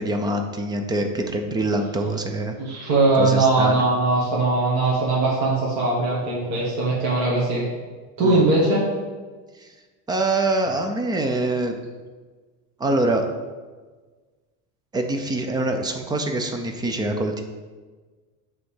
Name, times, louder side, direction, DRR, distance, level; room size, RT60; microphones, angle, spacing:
voice 1, 0.0-2.6 3.1-3.8 8.2-8.5 9.6-9.7 10.1-11.7 12.8-13.2 14.9-17.4, right 2 dB, 10° right, 5 dB, 0.4 m, -24 dB
voice 2, 2.6-7.6 8.2-8.9, right 2 dB, 40° right, -6 dB, 1.7 m, -20 dB
7.9 x 3.5 x 5.6 m, 1.4 s
cardioid pair, 145°, 43 cm